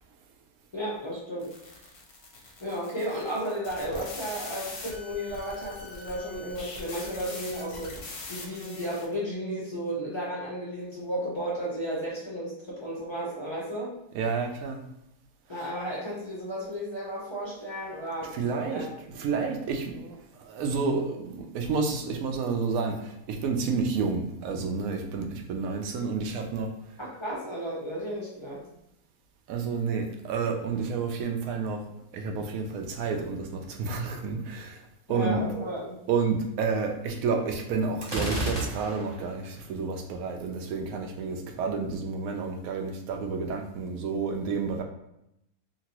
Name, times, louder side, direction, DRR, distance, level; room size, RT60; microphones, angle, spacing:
voice 1, 0.7-1.5 2.6-7.9 8.3-13.9 15.5-18.9 27.0-28.6 35.1-36.0, equal, 40° left, -7 dB, 0.4 m, -33 dB
sound 1, 1.4-9.1, left 3 dB, 60° left, 0.9 m, -42 dB
voice 2, 14.1-14.8 15.6-15.7 18.3-26.8 29.5-31.8 32.1-34.8 35.1-35.4 36.1-44.8, right 5 dB, 70° right, 4 dB, 0.9 m, -30 dB
Gunshot gunfire, 38.0-39.2, right 1 dB, 40° right, 0.3 m, -31 dB
2.9 x 2.6 x 2.8 m, 0.82 s
omnidirectional pair, 1.7 m